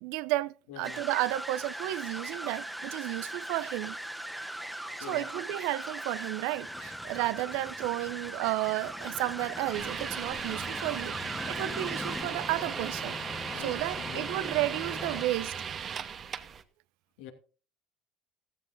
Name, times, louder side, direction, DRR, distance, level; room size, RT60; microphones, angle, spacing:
voice 1, 0.0-4.0 5.1-11.2 11.5-13.2 13.5-15.5, right 17 dB, 80° right, 0.6 m, -32 dB
voice 2, 0.7-1.0 5.0-5.3 13.5-14.5 17.2-17.3, left 10 dB, 85° left, 2.6 m, -46 dB
Engine starting, 0.8-15.3, left 3 dB, 20° left, 0.8 m, -45 dB
sound 1, 0.8-12.2, right 1 dB, 5° right, 1.4 m, -40 dB
sound 2, 9.7-16.6, right 7 dB, 40° right, 1.2 m, -37 dB
16.0 x 13.5 x 2.7 m
supercardioid pair, 100°, 0 cm